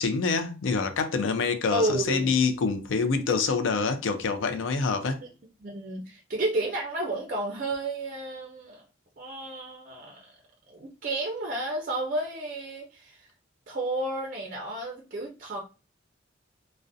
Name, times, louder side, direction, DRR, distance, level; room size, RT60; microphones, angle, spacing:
voice 1, 0.0-5.2, left 4 dB, 75° left, 0.4 m, -26 dB
voice 2, 1.7-2.3 5.2-5.3 5.6-8.8 9.2-10.3 10.7-13.3 13.7-15.6, right 2 dB, 40° right, 0.4 m, -31 dB
2.4 x 2.0 x 2.5 m
head